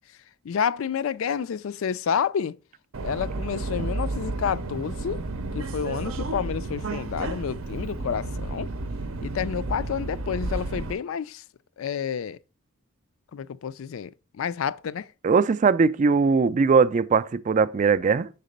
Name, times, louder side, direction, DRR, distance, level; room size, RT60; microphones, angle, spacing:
voice 1, 0.4-2.6 3.0-5.2 5.5-8.7 9.2-11.4 11.8-12.4 13.3-14.1 14.4-15.1, left 7 dB, 65° left, 0.4 m, -29 dB
Subway metro underground, 2.9-10.9, right 2 dB, 70° right, 0.6 m, -32 dB
voice 2, 15.2-18.3, right 5 dB, 35° right, 0.3 m, -20 dB
6.6 x 4.0 x 5.2 m
head